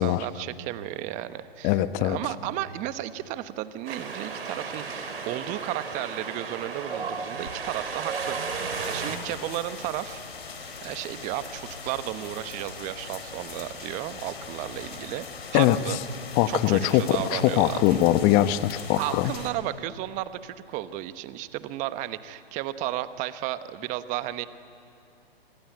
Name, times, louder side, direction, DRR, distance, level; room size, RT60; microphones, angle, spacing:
voice 1, 0.0-10.2 10.8-15.2 15.5-16.0 16.5-18.0 18.9-24.5, right 14 dB, 25° right, 13 dB, 1.0 m, -33 dB
voice 2, 1.6-2.2 15.5-15.8 16.4-19.3, left 13 dB, 25° left, 13 dB, 1.0 m, -22 dB
Wind, 3.8-9.2, right 5 dB, 70° right, 4.2 m, -34 dB
sound 1, 8.7-19.5, left 5 dB, 75° left, 4.5 m, -41 dB
26.0 x 24.5 x 9.3 m, 2.7 s
hypercardioid pair, 130°, 31 cm